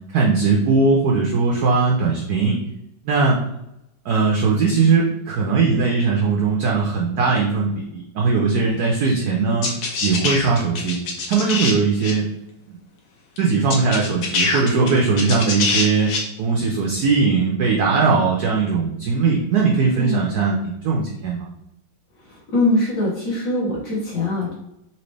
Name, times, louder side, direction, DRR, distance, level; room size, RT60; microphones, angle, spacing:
voice 1, 0.1-2.6 3.0-3.4 4.1-9.7 10.0-11.0 11.3-12.3 12.7-12.8 13.4-21.5, right 4 dB, 70° right, -1 dB, 0.9 m, -19 dB
sound 1, 9.6-11.7 12.0-12.1 13.4-13.5 13.7-16.2, left 4 dB, 75° left, 1.6 m, -23 dB
voice 2, 22.5-24.5, left 1 dB, 50° left, -6 dB, 1.3 m, -22 dB
4.1 x 2.9 x 3.2 m, 0.84 s
omnidirectional pair, 2.3 m